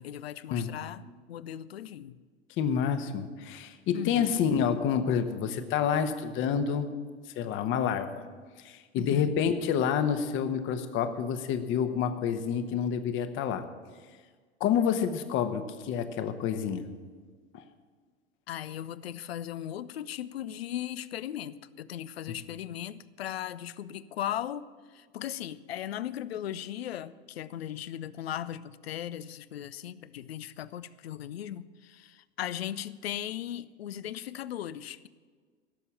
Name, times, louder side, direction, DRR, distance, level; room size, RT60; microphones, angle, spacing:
voice 1, 0.0-2.2 3.9-4.4 9.0-9.4 18.5-35.1, left 11 dB, 65° left, 0.6 m, -38 dB
voice 2, 2.6-6.9 7.3-8.2 8.6-13.7 14.6-16.9 17.5-17.6, left 7 dB, 40° left, 1.1 m, -28 dB
16.5 x 7.0 x 7.3 m
figure-of-eight pair, 85°, 33 cm